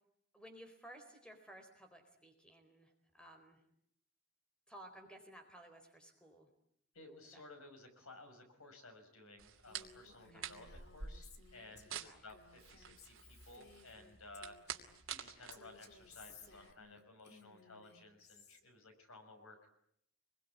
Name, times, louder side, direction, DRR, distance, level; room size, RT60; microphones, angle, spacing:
voice 1, 0.3-3.6 4.7-6.5 7.3-7.4 10.3-10.5 11.9-12.2, right 1 dB, 5° left, 5 dB, 4.2 m, -57 dB
voice 2, 6.9-13.1 13.5-19.7, left 2 dB, 90° left, 5 dB, 6.4 m, -57 dB
sound 1, 9.4-16.7, right 8 dB, 75° right, 2.6 m, -49 dB
Female speech woman speaking, 9.7-15.0 15.5-18.6, left 4 dB, 50° left, 2.2 m, -61 dB
26.5 x 22.0 x 9.7 m, 0.71 s
head